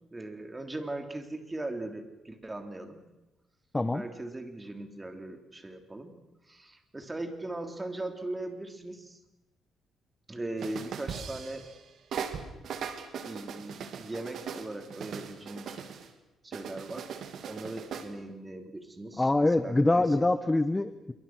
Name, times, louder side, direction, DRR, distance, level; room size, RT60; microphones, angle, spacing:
voice 1, 0.1-3.0 3.9-6.1 6.5-9.2 10.3-11.7 13.2-15.7 16.4-17.2 17.5-20.1, right 2 dB, 15° right, 6 dB, 3.6 m, -39 dB
sound 1, 10.6-11.8 12.1-16.1 16.5-18.1, right 7 dB, 65° right, 2.6 m, -39 dB
voice 2, 19.2-21.1, left 2 dB, 15° left, 12 dB, 1.1 m, -25 dB
27.0 x 24.0 x 6.3 m, 1.0 s
cardioid pair, 90°, 0 cm